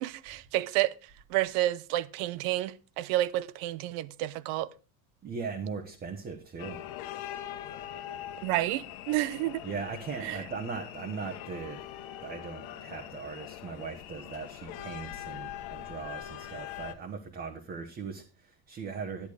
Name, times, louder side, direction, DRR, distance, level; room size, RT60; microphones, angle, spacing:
voice 1, 0.0-0.9 1.3-4.7 8.4-9.6 10.2-10.4, right 15 dB, 65° right, 0.8 m, -30 dB
voice 2, 5.2-6.8 9.6-11.8 12.2-19.3, right 5 dB, 20° right, 1.1 m, -39 dB
sound 1, 6.6-16.9, left 12 dB, 50° left, 1.2 m, -42 dB
11.0 x 10.5 x 5.0 m
cardioid pair, 175°, 43 cm